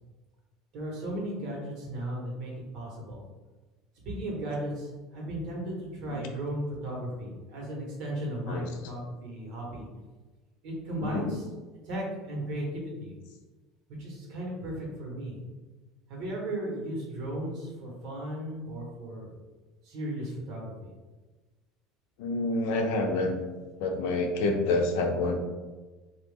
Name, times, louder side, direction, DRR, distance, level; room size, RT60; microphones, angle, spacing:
voice 1, 0.7-3.2 4.0-9.9 10.6-11.4 11.9-13.1 14.0-15.4 16.1-19.3 19.9-20.9, right 1 dB, 65° right, -2 dB, 1.1 m, -35 dB
voice 2, 11.0-11.3 22.2-23.4 23.8-25.3, left 2 dB, 80° left, 3 dB, 0.5 m, -27 dB
2.9 x 2.4 x 3.5 m, 1.3 s
supercardioid pair, 120°, 0 cm